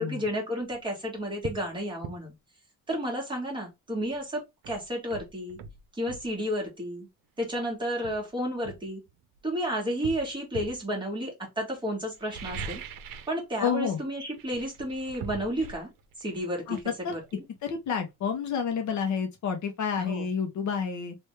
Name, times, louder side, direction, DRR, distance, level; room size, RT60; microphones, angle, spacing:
voice 1, 0.0-2.3 2.9-5.6 5.9-7.1 7.4-9.0 9.4-12.8 13.3-15.9 16.2-16.8 17.1-17.2 20.0-20.2, equal, 15° right, 1.6 m, -32 dB
sound 1, 0.6-0.8 1.4-1.7 2.0-2.2 4.1-4.2 4.6-6.3 7.4-7.5 8.0-9.4 10.0-10.8 12.1-13.4 13.7-14.0 14.3-17.9 18.2-18.3, right 6 dB, 75° right, 0.7 m, -42 dB
voice 2, 13.6-14.0 16.7-17.2 17.6-21.2, left 6 dB, 60° left, 0.9 m, -29 dB
3.3 x 2.6 x 3.2 m
cardioid pair, 145°, 33 cm